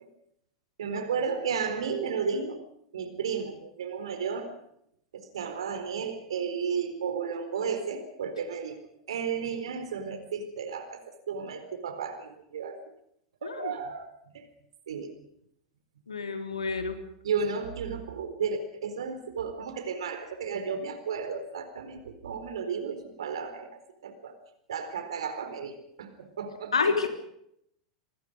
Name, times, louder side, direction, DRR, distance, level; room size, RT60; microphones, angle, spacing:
voice 1, 0.8-2.6 2.9-4.5 5.1-8.8 9.1-12.8 13.4-14.1 14.3-14.5 14.9-15.2 17.2-24.4 24.7-26.7, right 6 dB, 65° right, 8 dB, 4.2 m, -33 dB
voice 2, 13.4-13.7 16.1-17.0 26.7-27.1, left 4 dB, 80° left, 7 dB, 3.2 m, -28 dB
27.0 x 21.0 x 5.2 m, 0.73 s
figure-of-eight pair, 90°, 3 cm